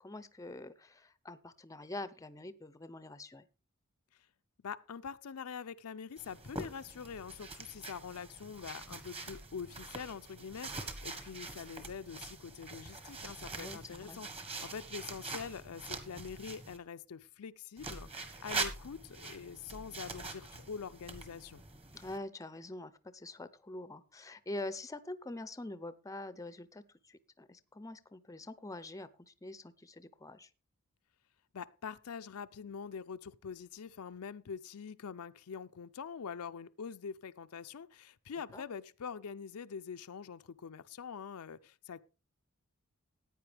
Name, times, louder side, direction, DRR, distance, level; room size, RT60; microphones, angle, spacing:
voice 1, 0.0-3.5 13.5-14.2 21.9-30.5 38.5-38.6, left 2 dB, 15° left, 0.6 m, -45 dB
voice 2, 4.6-21.6 31.5-42.0, left 6 dB, 75° left, 0.5 m, -45 dB
sound 1, 6.2-16.8 17.8-22.2, right 3 dB, 25° right, 1.4 m, -44 dB
14.5 x 9.3 x 3.4 m
head